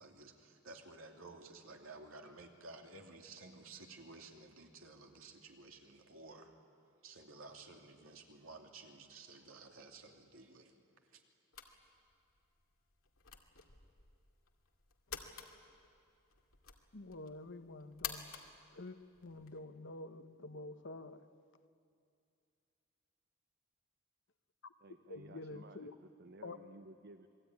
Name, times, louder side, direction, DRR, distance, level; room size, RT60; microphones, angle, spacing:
voice 1, 0.0-6.5 7.0-10.7 11.1-11.2, right 3 dB, 75° right, 2.8 m, -54 dB
sound 1, 11.5-19.6, left 8 dB, 90° left, 2.4 m, -51 dB
voice 2, 16.9-18.3 18.7-19.0 19.2-21.2 25.1-25.9 26.4-26.6, left 2 dB, 60° left, 1.1 m, -48 dB
voice 3, 24.8-27.3, right 2 dB, 55° right, 0.9 m, -56 dB
28.0 x 21.5 x 9.7 m
head